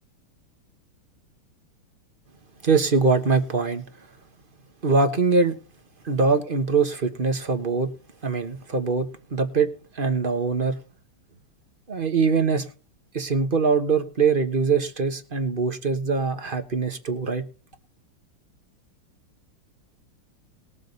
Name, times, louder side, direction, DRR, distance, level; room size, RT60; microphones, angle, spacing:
voice 1, 2.6-3.8 4.8-5.5 6.0-7.9 8.2-9.7 9.9-10.8 11.9-12.7 13.1-17.4, right 4 dB, 30° right, 1.1 m, -23 dB
20.0 x 7.6 x 4.0 m
omnidirectional pair, 2.3 m